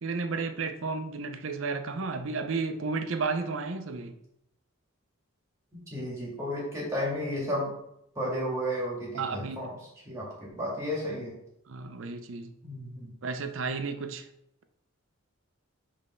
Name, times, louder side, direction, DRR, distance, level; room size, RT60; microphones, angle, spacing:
voice 1, 0.0-4.1 9.1-9.7 11.7-12.5 13.2-14.2, right 4 dB, 65° right, 8 dB, 0.6 m, -32 dB
voice 2, 5.7-7.7 8.2-9.8 10.1-11.3 12.6-13.1, equal, 15° right, -4 dB, 1.9 m, -33 dB
5.2 x 3.4 x 5.4 m, 0.79 s
head